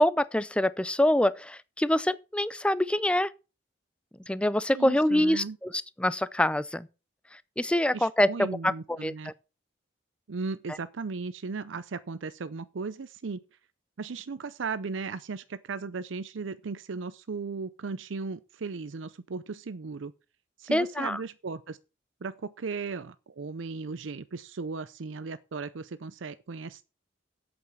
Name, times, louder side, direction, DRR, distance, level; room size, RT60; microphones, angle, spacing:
voice 1, 0.0-3.3 4.3-6.9 7.6-9.3 20.7-21.2, left 1 dB, 5° left, 0.4 m, -25 dB
voice 2, 4.7-5.6 7.9-9.3 10.3-13.4 14.0-20.1 20.6-21.8 22.2-26.8, right 4 dB, 80° right, 0.5 m, -36 dB
8.2 x 7.0 x 7.1 m
head